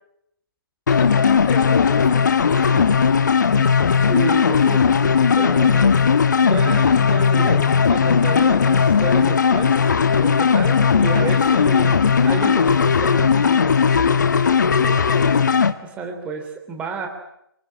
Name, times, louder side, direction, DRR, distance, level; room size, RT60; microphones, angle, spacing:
sound 1, 0.9-15.7, left 6 dB, 50° left, 1.5 m, -17 dB
voice 1, 0.9-2.4 11.5-11.8 14.8-15.4, left 6 dB, 20° left, 5 dB, 3.7 m, -31 dB
voice 2, 2.5-2.9 3.5-3.7 4.0-5.9 6.4-9.8 10.1-12.0 12.2-13.8 15.8-17.1, right 4 dB, 10° right, 4 dB, 3.3 m, -30 dB
25.5 x 23.5 x 10.0 m, 0.77 s
figure-of-eight pair, 140°, 13 cm